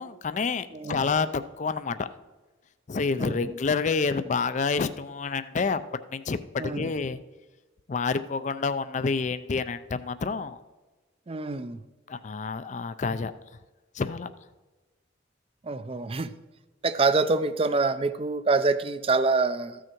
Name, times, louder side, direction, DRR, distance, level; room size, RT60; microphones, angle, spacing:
voice 1, 0.0-2.1 2.9-5.8 6.1-7.2 7.9-10.6 12.1-13.3 13.9-14.3, left 4 dB, 40° left, 12 dB, 0.4 m, -28 dB
voice 2, 0.7-1.0 3.2-3.6 6.6-6.9 11.3-11.8 15.6-16.3 16.8-19.8, right 3 dB, 30° right, 13 dB, 0.5 m, -26 dB
14.0 x 6.3 x 4.5 m, 1.2 s
head